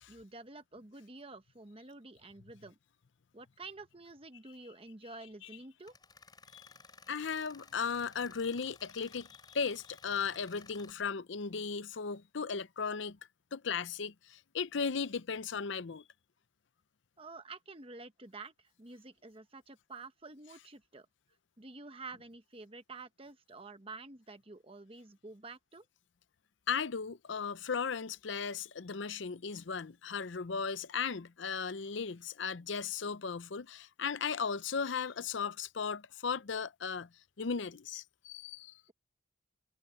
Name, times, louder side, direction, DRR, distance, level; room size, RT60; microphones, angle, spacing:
voice 1, 0.1-2.8 3.3-5.9 17.2-21.1 21.6-25.9, right 3 dB, 25° right, 1.1 m, -49 dB
Tools, 5.8-10.9, left 4 dB, 20° left, 5.2 m, -57 dB
voice 2, 7.1-13.2 13.5-16.0 26.7-37.1 37.4-38.8, left 6 dB, 65° left, 0.6 m, -36 dB
head